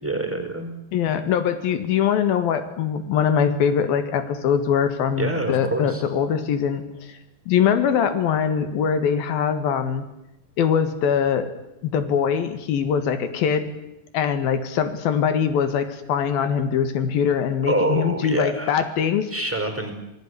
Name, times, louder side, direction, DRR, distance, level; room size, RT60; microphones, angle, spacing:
voice 1, 0.0-0.7 5.2-6.0 17.6-18.8 19.3-19.9, right 2 dB, 5° right, 6 dB, 4.8 m, -26 dB
voice 2, 0.9-6.8 7.5-10.0 10.6-11.5 11.8-13.7 14.1-19.3, left 7 dB, 85° left, 10 dB, 3.7 m, -22 dB
28.0 x 18.5 x 9.8 m, 0.87 s
omnidirectional pair, 4.1 m